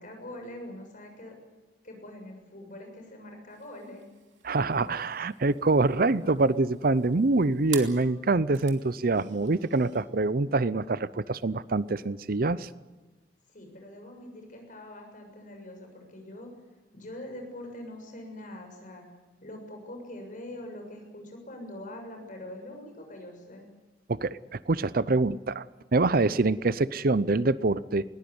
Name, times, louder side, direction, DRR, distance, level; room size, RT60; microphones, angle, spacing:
voice 1, 0.0-1.4 1.8-4.1 4.7-5.0 13.5-16.5 16.9-19.0 19.4-23.6, left 1 dB, 45° left, 4 dB, 6.9 m, -43 dB
sound 1, 3.5-10.1, right 10 dB, 80° right, 2.9 m, -47 dB
voice 2, 4.4-12.7 24.1-25.6 25.9-28.0, right 3 dB, 50° right, 17 dB, 0.7 m, -25 dB
21.0 x 19.0 x 9.7 m, 1.2 s
head